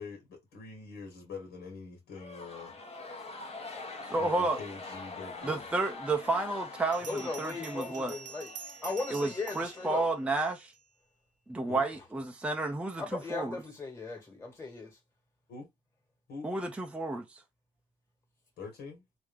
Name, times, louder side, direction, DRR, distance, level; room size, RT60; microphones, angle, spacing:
voice 1, 0.0-2.8 4.1-5.6 11.7-11.9 15.5-15.7 16.3-16.6 18.6-19.0, left 4 dB, 70° left, 1.7 m, -44 dB
sound 1, 2.1-10.5, left 3 dB, 35° left, 1.1 m, -44 dB
voice 2, 4.1-4.6 5.4-8.2 9.1-10.7 11.5-13.6 16.4-17.4, right 2 dB, 5° right, 0.6 m, -31 dB
Bell, 6.9-10.8, right 6 dB, 45° right, 0.7 m, -47 dB
voice 3, 7.1-8.5 8.8-10.1 13.0-15.0, left 3 dB, 15° left, 1.7 m, -37 dB
3.2 x 2.8 x 3.5 m
cardioid pair, 110°, 17 cm